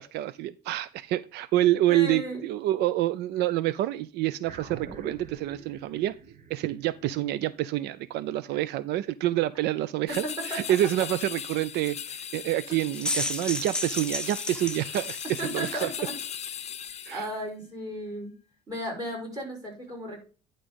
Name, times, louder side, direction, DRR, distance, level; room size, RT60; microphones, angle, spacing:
voice 1, 0.0-6.1 6.5-15.9 17.1-17.3, right 14 dB, 80° right, 0.4 m, -27 dB
voice 2, 1.9-2.4 8.5-8.6 10.5-10.6 15.4-16.1 17.1-18.3 18.7-20.2, equal, 20° right, 5.3 m, -35 dB
sound 1, 4.4-9.1, right 6 dB, 50° right, 1.3 m, -46 dB
sound 2, 10.1-17.4, left 8 dB, 40° left, 0.7 m, -38 dB
sound 3, 12.8-15.8, left 1 dB, 5° left, 0.8 m, -33 dB
10.5 x 3.7 x 5.1 m
cardioid pair, 110°, 17 cm